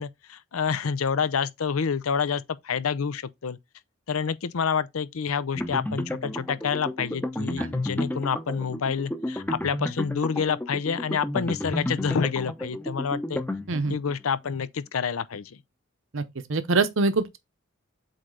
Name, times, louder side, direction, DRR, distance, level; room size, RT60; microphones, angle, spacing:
voice 1, 0.0-3.6 4.1-13.4 13.9-15.6, left 6 dB, 80° left, 0.6 m, -28 dB
sound 1, 5.6-14.1, left 1 dB, 10° left, 0.7 m, -32 dB
voice 2, 16.5-17.4, right 3 dB, 65° right, 0.8 m, -24 dB
7.9 x 3.2 x 3.9 m
head